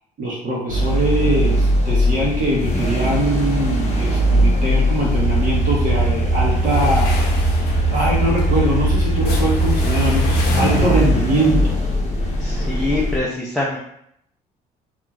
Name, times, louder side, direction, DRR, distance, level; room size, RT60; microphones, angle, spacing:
voice 1, 0.2-7.1 7.9-11.8, right 1 dB, 50° right, -4 dB, 0.8 m, -22 dB
sound 1, 0.7-13.2, left 1 dB, 40° left, 0.8 m, -20 dB
sound 2, 5.0-10.8, right 9 dB, 70° right, 1.2 m, -24 dB
sound 3, 6.6-11.2, left 3 dB, 80° left, 0.7 m, -31 dB
voice 2, 12.4-13.8, left 2 dB, 5° left, -5 dB, 0.4 m, -24 dB
2.4 x 2.4 x 3.0 m, 0.72 s
cardioid pair, 110°, 17 cm